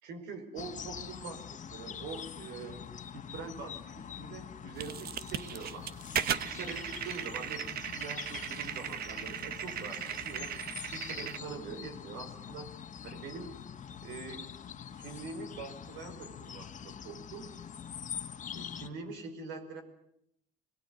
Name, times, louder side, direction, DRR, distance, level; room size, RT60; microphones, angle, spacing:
voice 1, 0.0-2.8 3.1-6.0 6.3-10.5 10.9-12.7 13.0-13.5 14.0-14.4 14.9-17.5 18.5-19.8, right 4 dB, 90° right, 7 dB, 5.0 m, -44 dB
sound 1, 0.6-18.9, left 8 dB, 45° left, 1.8 m, -44 dB
sound 2, 4.8-11.4, right 10 dB, 60° right, 1.1 m, -37 dB
23.5 x 21.5 x 9.8 m, 0.77 s
cardioid pair, 100°, 17 cm